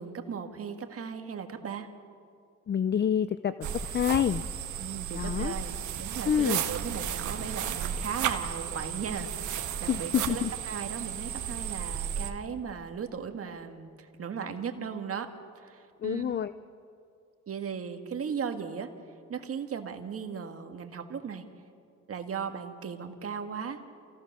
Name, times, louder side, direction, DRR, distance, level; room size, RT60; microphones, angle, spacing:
voice 1, 0.0-1.9 4.8-15.3 15.6-16.2 17.5-18.9 19.3-21.4 22.1-23.8, right 7 dB, 50° right, 6 dB, 1.8 m, -37 dB
voice 2, 2.7-3.5 3.8-4.4 5.2-5.5 6.3-6.6 9.9-10.5 16.0-16.5, left 8 dB, 35° left, 13 dB, 0.5 m, -27 dB
sound 1, 3.6-12.3, right 8 dB, 75° right, 1.6 m, -34 dB
27.5 x 15.5 x 6.7 m, 2.4 s
cardioid pair, 90°, 30 cm